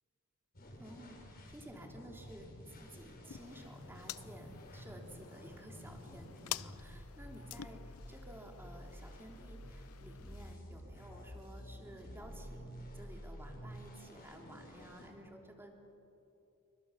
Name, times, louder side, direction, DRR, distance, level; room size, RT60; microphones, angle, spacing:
sound 1, 0.5-15.1, equal, 45° left, 5.7 m, -51 dB
voice 1, 0.8-1.2 1.5-15.8, right 1 dB, 10° right, 1 dB, 3.3 m, -53 dB
sound 2, 3.3-10.6, left 12 dB, 75° left, 0.5 m, -49 dB
29.0 x 24.0 x 7.1 m, 2.8 s
head